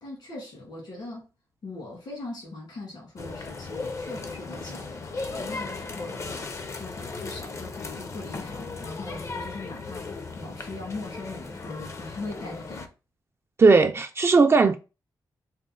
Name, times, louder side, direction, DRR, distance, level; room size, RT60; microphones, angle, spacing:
voice 1, 0.0-1.3 1.6-12.9, left 2 dB, 75° left, 1.7 m, -40 dB
sound 1, 3.2-12.9, left 3 dB, 40° left, 0.5 m, -36 dB
voice 2, 13.6-14.8, right 4 dB, 35° right, 0.3 m, -17 dB
4.0 x 2.1 x 3.6 m
wide cardioid pair, 135°, 8 cm